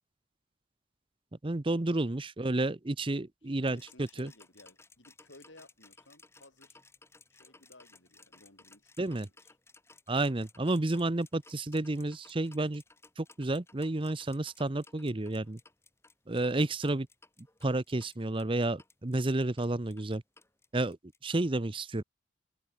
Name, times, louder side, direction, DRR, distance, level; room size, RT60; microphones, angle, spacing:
voice 1, 1.4-4.3 9.0-9.3 10.1-12.8 13.2-15.6 16.3-17.1 17.6-20.2 20.7-21.0 21.2-22.0, right 2 dB, 25° right, 0.7 m, -31 dB
voice 2, 3.6-6.8 7.3-9.6, left 2 dB, 70° left, 5.7 m, -58 dB
sound 1, 3.7-21.2, left 3 dB, 15° left, 5.4 m, -59 dB
open air
head